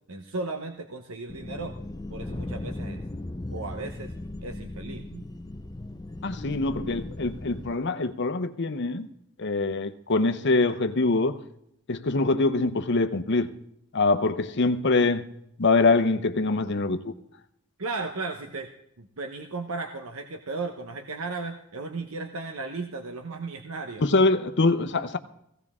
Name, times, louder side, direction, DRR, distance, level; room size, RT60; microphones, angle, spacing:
voice 1, 0.0-1.8 2.1-3.0 3.5-4.1 4.4-5.2 17.8-18.7 19.0-24.1, right 3 dB, 75° right, 5 dB, 1.0 m, -35 dB
sound 1, 1.3-7.8, left 1 dB, 20° left, 0.5 m, -37 dB
voice 2, 6.2-9.1 9.4-11.4 11.9-13.5 13.9-15.2 15.6-17.1 24.0-25.2, left 3 dB, 55° left, 10 dB, 0.9 m, -24 dB
17.0 x 16.0 x 3.7 m, 0.77 s
head